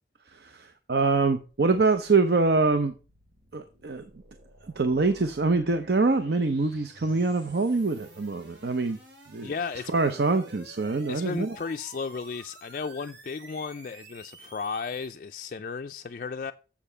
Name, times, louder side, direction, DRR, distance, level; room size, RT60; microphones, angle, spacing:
voice 1, 0.3-2.9 3.5-4.0 4.8-9.0 9.3-9.5 9.9-11.5, right 3 dB, 60° right, 0.7 m, -24 dB
sound 1, 1.5-15.1, right 2 dB, 80° right, 2.8 m, -52 dB
voice 2, 9.4-9.9 11.1-16.5, left 5 dB, 45° left, 0.3 m, -34 dB
7.2 x 6.9 x 5.5 m
head